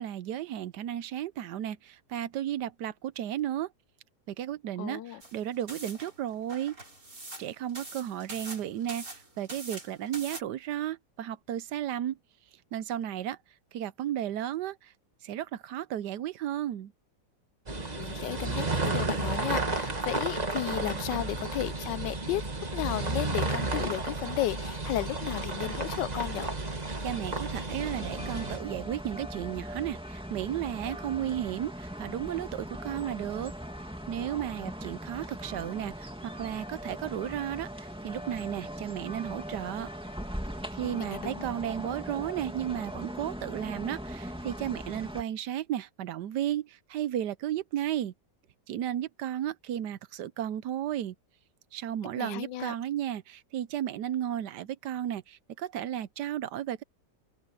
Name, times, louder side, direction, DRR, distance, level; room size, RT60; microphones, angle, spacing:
voice 1, 0.0-3.7 4.3-6.8 7.4-12.2 12.7-13.4 13.7-14.9 15.2-16.9 27.0-33.5 34.1-39.9 40.7-48.1 48.7-51.1 51.7-56.8, right 11 dB, 70° right, 1.3 m, -34 dB
voice 2, 4.8-5.2 18.0-22.4 22.7-26.5 40.8-41.4 52.2-52.7, left 14 dB, 80° left, 1.2 m, -34 dB
sound 1, 5.2-10.4, right 2 dB, 50° right, 6.5 m, -44 dB
sound 2, 17.7-28.6, right 2 dB, 25° right, 1.9 m, -32 dB
sound 3, 27.8-45.2, equal, 5° right, 2.2 m, -40 dB
omnidirectional pair, 1.9 m